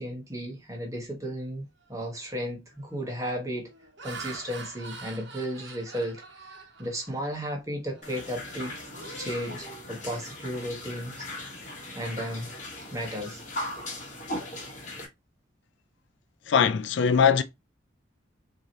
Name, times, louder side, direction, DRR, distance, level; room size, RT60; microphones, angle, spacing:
voice 1, 0.0-3.7 4.0-8.7 9.2-11.3 11.9-12.5 12.9-13.5, equal, 15° right, 1.2 m, -34 dB
Laughter, 1.9-2.2 2.7-3.0 3.6-7.5 7.9-8.1 8.5-10.5, right 3 dB, 60° right, 1.1 m, -45 dB
sound 1, 8.0-15.0, left 1 dB, 40° left, 1.5 m, -39 dB
voice 2, 16.5-17.4, left 6 dB, 65° left, 0.4 m, -21 dB
4.7 x 2.8 x 2.9 m
head